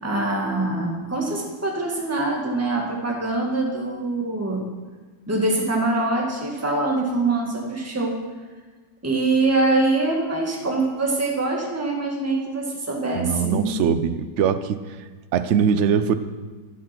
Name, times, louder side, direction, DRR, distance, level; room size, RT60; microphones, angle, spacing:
voice 1, 0.0-4.6 5.3-8.2 9.0-13.7, right 2 dB, 10° right, -1 dB, 1.7 m, -24 dB
voice 2, 13.1-14.8 15.3-16.1, right 7 dB, 70° right, 11 dB, 0.6 m, -21 dB
11.5 x 10.0 x 6.0 m, 1.4 s
omnidirectional pair, 2.0 m